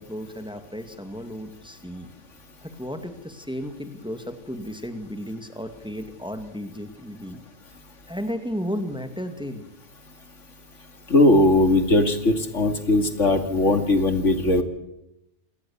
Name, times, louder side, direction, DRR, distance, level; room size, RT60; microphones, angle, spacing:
voice 1, 0.0-2.1 2.6-7.4 8.1-9.7, equal, 5° right, 7 dB, 2.2 m, -34 dB
voice 2, 11.1-14.6, left 2 dB, 80° left, 7 dB, 2.8 m, -19 dB
28.0 x 19.0 x 7.3 m, 0.87 s
omnidirectional pair, 1.2 m